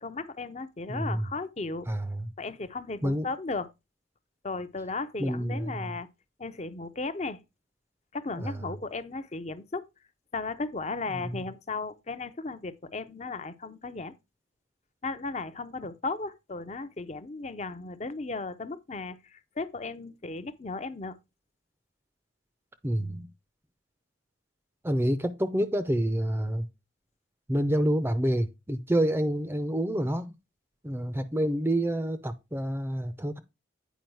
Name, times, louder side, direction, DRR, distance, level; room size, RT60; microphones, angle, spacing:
voice 1, 0.0-1.9 2.4-3.7 4.4-6.1 6.4-7.4 8.1-9.8 10.3-14.1 15.0-21.2, left 3 dB, 35° left, 0.6 m, -35 dB
voice 2, 0.9-1.3 1.9-2.3 3.0-3.3 5.2-5.7 8.3-8.6 11.1-11.4 22.8-23.3 24.8-26.7 27.5-30.3 30.8-33.4, right 1 dB, 10° right, 0.5 m, -28 dB
9.2 x 4.8 x 4.6 m
head